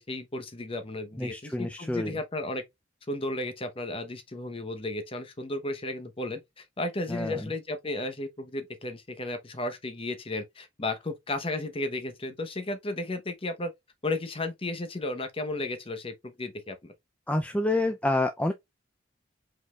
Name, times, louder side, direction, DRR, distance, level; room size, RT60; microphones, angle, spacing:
voice 1, 0.0-2.6 3.1-13.7 14.0-16.9, left 2 dB, 30° left, 0.8 m, -34 dB
voice 2, 1.2-2.2 7.1-7.3 17.3-18.5, left 2 dB, 5° left, 0.4 m, -28 dB
5.2 x 3.9 x 2.3 m
head